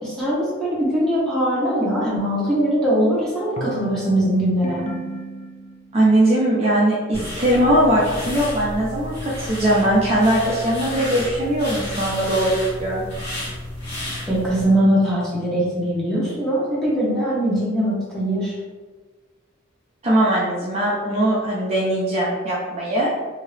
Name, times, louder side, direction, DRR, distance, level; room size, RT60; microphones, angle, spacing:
voice 1, 0.0-4.8 14.3-18.5, equal, 5° left, -8 dB, 1.0 m, -21 dB
sound 1, 2.5-6.1, right 1 dB, 30° left, 0.4 m, -36 dB
voice 2, 5.9-13.0 20.0-23.1, right 1 dB, 30° right, -6 dB, 0.5 m, -20 dB
sound 2, 7.1-14.6, left 1 dB, 55° left, 1.3 m, -31 dB
2.8 x 2.8 x 3.2 m, 1.4 s
head